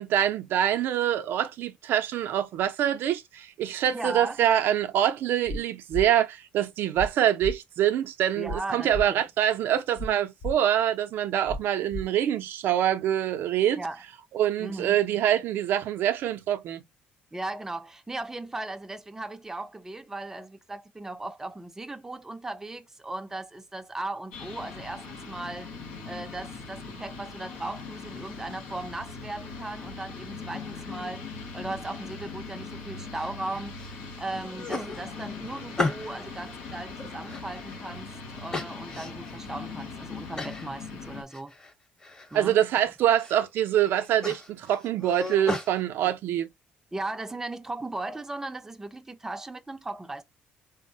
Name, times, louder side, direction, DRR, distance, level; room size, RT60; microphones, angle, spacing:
voice 1, 0.0-13.8 14.3-16.8 42.3-46.5, right 11 dB, 70° right, 0.4 m, -25 dB
voice 2, 3.9-4.4 8.4-9.2 13.8-14.0 14.6-15.0 17.3-25.7 26.1-31.2 31.5-33.8 34.2-41.5 42.3-42.6 46.9-50.2, right 2 dB, 10° right, 0.4 m, -37 dB
sound 1, 5.5-5.6 5.9-6.1 7.0-7.1 7.4-7.5 8.5-8.6 8.9-9.1 10.0-10.1 10.4-10.5 11.5-11.6 11.9-12.0, equal, 55° left, 0.6 m, -32 dB
sound 2, 24.3-41.2, left 4 dB, 85° left, 1.0 m, -40 dB
sound 3, 33.2-33.9 34.3-36.3 36.8-38.0 38.5-39.3 39.8-39.9 40.4-40.7 41.0-41.7 42.0-42.6 43.0-43.5 43.8-45.7, left 2 dB, 20° left, 0.9 m, -35 dB
3.4 x 2.0 x 2.6 m
supercardioid pair, 80°, 4 cm